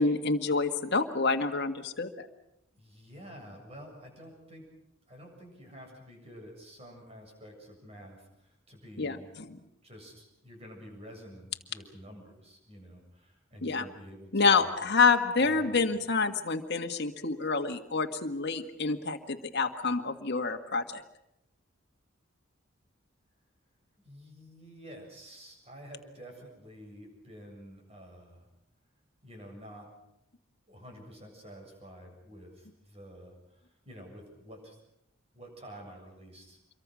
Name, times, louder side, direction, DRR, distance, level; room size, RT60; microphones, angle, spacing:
voice 1, 0.0-2.3 9.0-9.6 13.6-13.8 14.3-21.0, left 4 dB, 55° left, 5 dB, 1.8 m, -28 dB
voice 2, 2.7-4.7 5.1-9.3 9.8-14.8 15.4-15.8 24.0-28.5 29.2-29.9 30.7-34.8 35.3-36.6, equal, 30° right, 2 dB, 7.5 m, -49 dB
26.5 x 23.0 x 6.3 m, 0.83 s
head